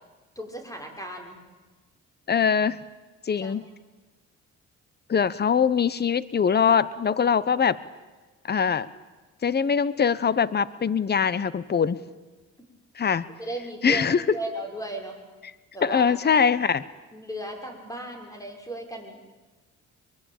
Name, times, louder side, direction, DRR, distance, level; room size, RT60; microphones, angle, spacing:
voice 1, 0.3-1.4 3.4-3.5 13.4-15.1 15.7-16.2 17.1-19.4, right 1 dB, 10° left, 3 dB, 6.4 m, -36 dB
voice 2, 2.3-2.8 3.3-3.6 5.1-7.8 8.4-8.9 9.4-12.0 13.0-13.3 13.8-14.2 15.8-16.8, left 6 dB, 35° left, 17 dB, 1.1 m, -22 dB
24.0 x 23.0 x 9.1 m, 1.3 s
cardioid pair, 90°, 30 cm